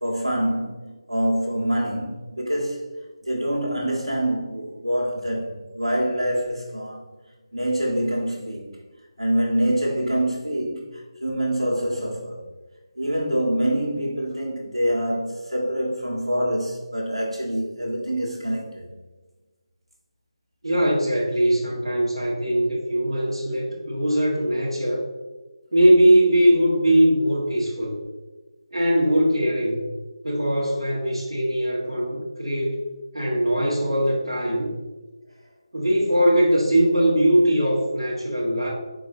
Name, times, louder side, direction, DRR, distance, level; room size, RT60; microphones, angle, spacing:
voice 1, 0.0-2.8 3.3-7.0 7.5-8.7 9.2-10.9 11.2-12.4 13.0-18.9, right 1 dB, 85° right, 1.3 m, -25 dB
voice 2, 20.6-25.0 25.7-28.0 28.7-29.9 30.2-32.8 33.1-34.7 35.7-38.7, right 1 dB, 65° right, 1.1 m, -20 dB
4.9 x 4.0 x 2.6 m
figure-of-eight pair, 155°, 3 cm